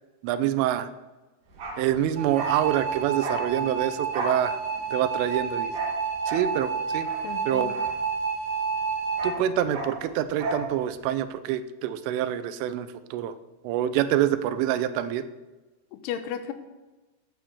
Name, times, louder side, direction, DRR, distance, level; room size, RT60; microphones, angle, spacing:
voice 1, 0.2-0.9 1.8-4.6 4.9-5.7 6.3-7.1 7.5-7.8 9.2-13.4 13.6-15.3, right 11 dB, 85° right, 13 dB, 3.2 m, -26 dB
Bark, 1.5-8.5 8.8-10.7 11.0-11.1, right 2 dB, 45° right, 3.6 m, -35 dB
sound 1, 2.2-9.3, right 5 dB, 60° right, 4.6 m, -30 dB
voice 2, 7.2-7.8 15.9-16.5, left 9 dB, 80° left, 10 dB, 3.1 m, -34 dB
12.0 x 8.9 x 6.9 m, 1.2 s
omnidirectional pair, 5.7 m